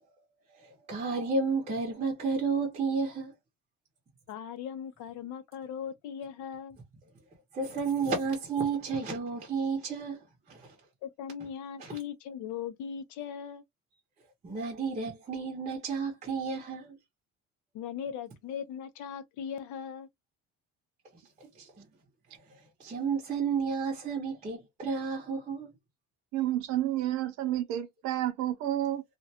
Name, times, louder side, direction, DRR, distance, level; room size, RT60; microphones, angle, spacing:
voice 1, 0.6-3.3 7.5-10.7 11.8-11.9 14.4-17.0 21.4-21.9 22.8-25.7, right 5 dB, 20° right, 0.8 m, -32 dB
voice 2, 4.3-6.8 11.0-13.6 17.7-20.1, left 8 dB, 75° left, 0.6 m, -39 dB
voice 3, 26.3-29.0, right 13 dB, 70° right, 0.6 m, -30 dB
2.5 x 2.2 x 2.7 m
cardioid pair, 160°, 30 cm